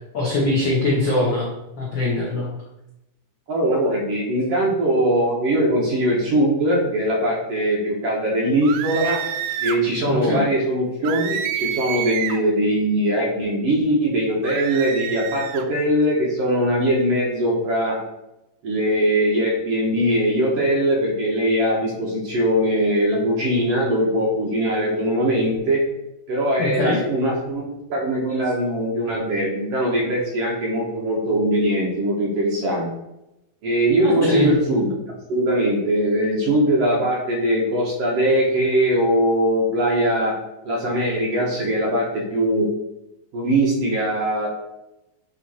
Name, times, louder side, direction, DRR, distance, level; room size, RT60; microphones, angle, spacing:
voice 1, 0.1-1.5 1.8-2.5 10.1-10.5 26.6-27.0 34.0-34.5, left 2 dB, 90° left, -4 dB, 1.0 m, -22 dB
voice 2, 3.5-9.2 9.6-18.0 18.6-25.8 26.3-27.6 27.9-32.9 33.6-35.0 35.3-40.3 40.6-42.7 43.3-44.5, right 1 dB, 60° right, -3 dB, 1.7 m, -21 dB
sound 1, 8.6-9.8 11.0-12.5 14.4-15.7, right 10 dB, 80° right, 1.9 m, -28 dB
7.6 x 3.1 x 4.1 m, 0.91 s
omnidirectional pair, 3.9 m